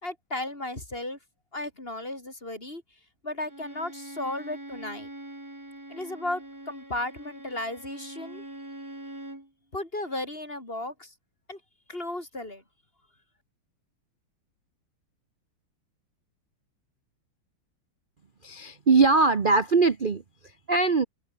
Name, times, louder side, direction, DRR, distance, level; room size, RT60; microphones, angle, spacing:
voice 1, 0.0-1.2 1.5-2.8 3.2-5.1 5.9-8.5 9.7-11.1 11.5-11.6 11.9-12.6, left 1 dB, 25° left, 6.4 m, -35 dB
Bowed string instrument, 3.4-9.5, right 1 dB, 10° right, 2.2 m, -43 dB
voice 2, 18.4-20.2 20.7-21.0, right 4 dB, 40° right, 0.7 m, -21 dB
omnidirectional pair, 2.4 m